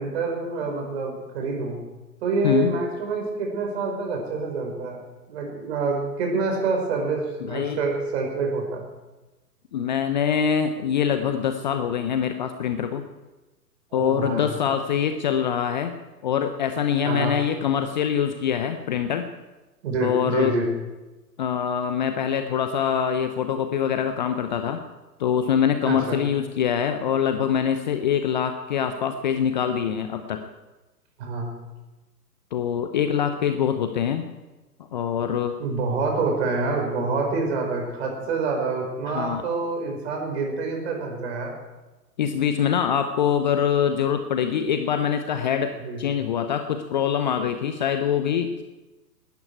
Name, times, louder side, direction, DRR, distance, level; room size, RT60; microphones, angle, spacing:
voice 1, 0.0-1.8 2.2-5.0 5.3-8.8 13.9-14.5 17.0-17.4 19.8-20.7 25.8-26.2 31.2-31.5 35.6-41.5 45.8-46.0, right 3 dB, 40° right, 1 dB, 4.9 m, -27 dB
voice 2, 7.4-7.8 9.7-13.0 13.9-16.0 16.2-19.3 20.0-20.6 21.4-24.8 25.2-30.4 32.5-34.3 34.9-35.6 39.1-39.4 42.2-48.6, left 8 dB, 30° left, 8 dB, 0.7 m, -24 dB
18.5 x 13.0 x 4.7 m, 1.1 s
figure-of-eight pair, 125°, 49 cm